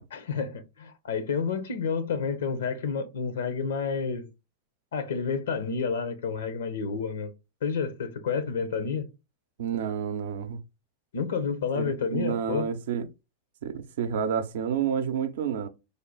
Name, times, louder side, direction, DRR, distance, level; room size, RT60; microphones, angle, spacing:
voice 1, 0.1-4.3 4.9-7.3 7.6-9.1 11.1-12.7, left 5 dB, 80° left, 0.6 m, -30 dB
voice 2, 9.6-10.6 11.8-13.1 13.6-15.7, right 8 dB, 70° right, 0.5 m, -29 dB
3.3 x 2.3 x 3.8 m
hypercardioid pair, 105°, 0 cm